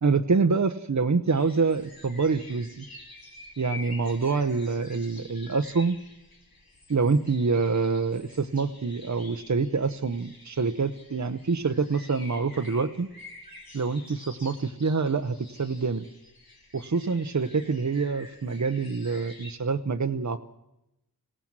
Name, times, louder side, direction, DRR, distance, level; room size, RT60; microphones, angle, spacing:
voice 1, 0.0-2.9 3.6-6.0 6.9-13.1 13.7-16.0 16.7-20.4, right 4 dB, 50° right, 8 dB, 0.9 m, -26 dB
sound 1, 1.3-19.5, left 3 dB, 65° left, 3.3 m, -49 dB
26.0 x 16.5 x 7.5 m, 0.90 s
wide cardioid pair, 50°, 38 cm